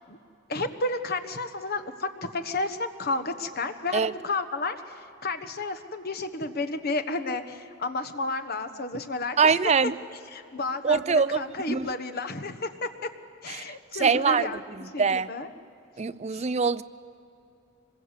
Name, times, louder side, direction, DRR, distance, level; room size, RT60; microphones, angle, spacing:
voice 1, 0.5-9.9 10.3-13.1 13.4-15.5 16.3-16.5, left 3 dB, 50° left, 8 dB, 1.3 m, -32 dB
voice 2, 9.4-9.9 10.8-11.4 11.7-11.9 13.6-13.7 14.0-14.5 15.0-15.3 16.0-16.8, right 5 dB, 35° right, 15 dB, 0.5 m, -23 dB
25.0 x 21.5 x 8.3 m, 2.8 s
head